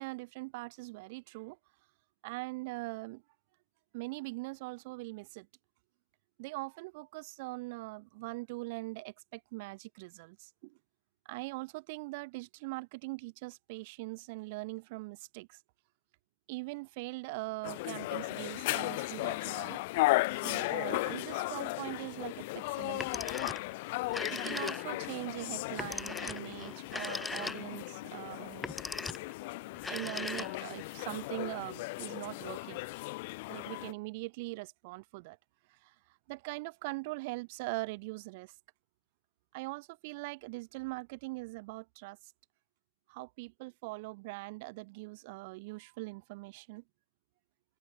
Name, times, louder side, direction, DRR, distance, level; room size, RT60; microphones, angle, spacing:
voice 1, 0.0-1.6 2.2-3.2 3.9-5.5 6.4-10.8 11.2-15.6 16.5-19.8 20.3-23.2 24.3-28.8 29.6-32.9 33.5-35.4 35.7-35.9 36.3-38.5 39.5-42.3 43.1-46.8, right 25 dB, 30° right, 3.1 m, -42 dB
sound 1, 17.6-33.9, left 22 dB, 30° left, 0.5 m, -36 dB
Telephone, 23.0-23.7 24.0-25.1 25.8-27.9 28.5-29.3 29.8-30.8, left 3 dB, 5° left, 1.4 m, -39 dB
figure-of-eight pair, 130°, 0 cm